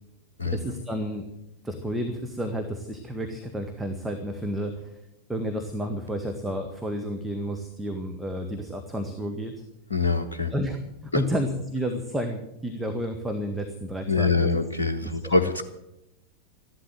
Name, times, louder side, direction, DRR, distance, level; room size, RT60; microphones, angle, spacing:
voice 1, 0.4-1.3 1.6-5.0 5.3-9.5 10.5-10.8 11.0-14.5 15.2-15.3, equal, 5° right, 3 dB, 1.6 m, -31 dB
voice 2, 9.9-10.5 11.1-11.2 14.1-15.6, left 3 dB, 70° left, 7 dB, 1.0 m, -24 dB
14.0 x 12.0 x 7.6 m, 0.87 s
figure-of-eight pair, 90°, 0 cm